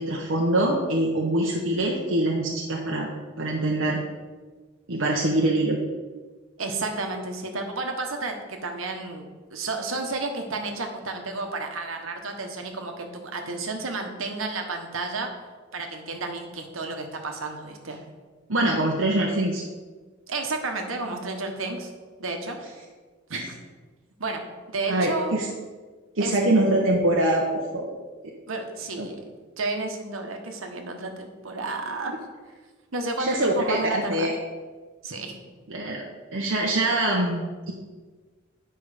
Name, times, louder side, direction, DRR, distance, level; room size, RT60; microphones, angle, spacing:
voice 1, 0.0-3.1 3.4-4.0 4.9-5.8 18.5-19.6 23.3-23.4 24.9-25.5 26.2-27.9 29.0-29.1 33.2-33.8 34.1-34.3 35.7-37.7, right 1 dB, 70° right, -2 dB, 1.0 m, -24 dB
voice 2, 6.6-15.3 15.7-18.0 20.3-21.9 22.2-22.6 23.3-23.4 24.2-24.4 24.7-25.4 26.2-26.4 28.5-29.2 29.6-32.1 32.9-34.3 35.0-35.4, right 3 dB, 90° right, 4 dB, 1.3 m, -31 dB
9.5 x 5.5 x 5.0 m, 1.4 s
head